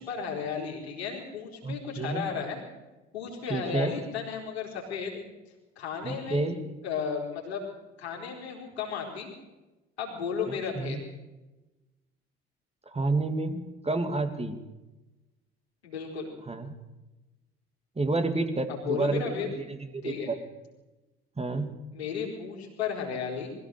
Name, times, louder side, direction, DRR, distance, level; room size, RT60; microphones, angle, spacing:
voice 1, 0.0-2.6 3.1-5.2 5.8-6.4 6.8-7.6 8.0-9.3 10.0-11.0 15.8-16.3 18.7-19.5 20.0-20.3 21.9-23.5, left 6 dB, 85° left, -1 dB, 4.4 m, -34 dB
voice 2, 1.6-2.3 3.5-4.0 6.0-6.7 10.5-11.0 12.9-14.6 16.5-16.7 18.0-20.4 21.4-21.8, right 3 dB, 20° right, 8 dB, 2.4 m, -30 dB
21.5 x 15.5 x 7.8 m, 1.1 s
figure-of-eight pair, 55°, 31 cm